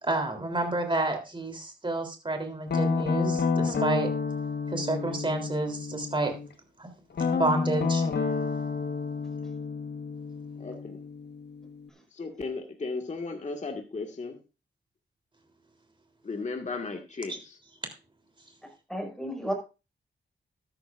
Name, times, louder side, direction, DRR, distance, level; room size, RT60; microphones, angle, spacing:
voice 1, 0.0-4.1 4.7-6.3 6.8-6.9 7.2-8.0 17.3-17.4, right 2 dB, 25° right, 4 dB, 3.5 m, -29 dB
Guitar, 2.7-6.5 7.1-11.9, left 4 dB, 60° left, 1.5 m, -30 dB
voice 2, 10.6-11.0 12.1-14.4 16.2-17.6, left 3 dB, 40° left, 3 dB, 1.9 m, -35 dB
voice 3, 18.6-19.5, equal, 5° left, 2 dB, 5.5 m, -34 dB
13.0 x 11.5 x 2.6 m, 0.30 s
cardioid pair, 85°, 19 cm